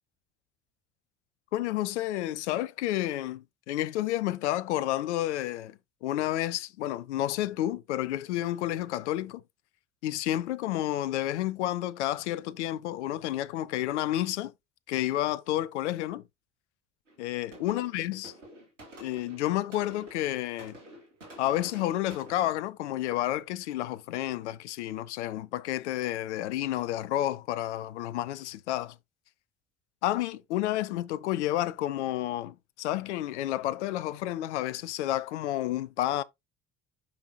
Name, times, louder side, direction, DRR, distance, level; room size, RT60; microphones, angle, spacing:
voice 1, 1.5-9.4 10.0-14.5 14.9-16.2 17.2-18.3 19.0-20.8 21.4-29.0 30.0-36.2, left 14 dB, 70° left, 0.7 m, -30 dB
sound 1, 17.1-17.2 17.5-22.5, right 1 dB, 80° right, 2.7 m, -49 dB
9.6 x 5.5 x 2.8 m
figure-of-eight pair, 55°, 36 cm